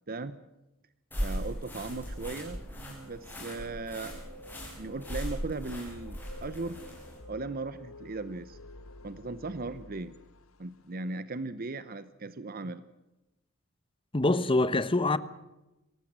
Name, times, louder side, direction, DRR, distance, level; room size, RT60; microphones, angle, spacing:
sound 1, 1.1-7.2, equal, 10° left, 7.8 m, -38 dB
voice 1, 1.2-4.2 4.8-6.8 7.3-8.6 9.0-10.1 10.6-12.8, right 3 dB, 45° right, 0.9 m, -38 dB
sound 2, 5.9-10.9, left 2 dB, 85° left, 1.5 m, -50 dB
voice 2, 14.1-15.2, left 2 dB, 25° left, 1.0 m, -25 dB
24.0 x 18.0 x 7.5 m
head